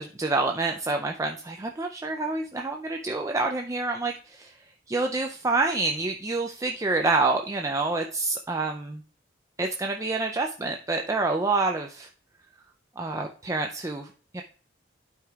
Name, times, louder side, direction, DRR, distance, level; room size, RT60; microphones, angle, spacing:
voice 1, 0.0-4.5 4.9-9.0 9.6-12.1 13.0-14.4, right 3 dB, 15° right, 3 dB, 0.4 m, -27 dB
12.0 x 5.0 x 2.3 m, 0.42 s
head